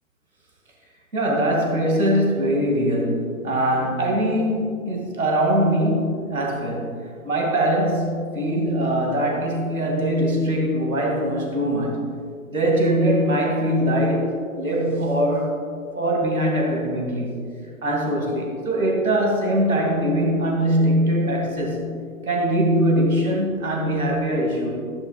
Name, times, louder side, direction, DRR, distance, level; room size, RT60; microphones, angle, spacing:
voice 1, 1.1-6.9 7.2-12.0 12.5-15.6 15.9-17.4 17.8-21.9 22.3-24.8, right 1 dB, 80° right, -1 dB, 2.5 m, -22 dB
16.0 x 10.0 x 2.4 m, 2.3 s
figure-of-eight pair, 115°, 42 cm